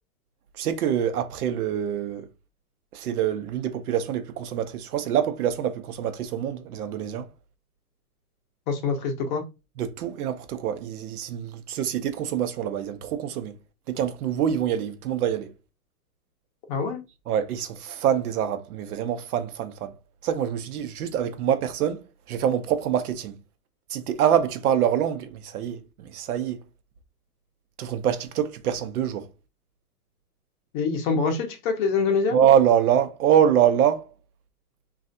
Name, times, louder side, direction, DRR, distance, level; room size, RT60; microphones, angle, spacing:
voice 1, 0.5-2.3 2.9-7.3 9.8-13.5 13.9-15.5 17.3-20.0 20.2-23.3 23.9-26.6 27.8-29.3 32.3-34.1, right 9 dB, 70° right, 0.7 m, -25 dB
voice 2, 8.7-9.4 16.7-17.0 30.7-32.4, left 5 dB, 35° left, 0.6 m, -25 dB
3.2 x 2.4 x 2.6 m
hypercardioid pair, 145°, 46 cm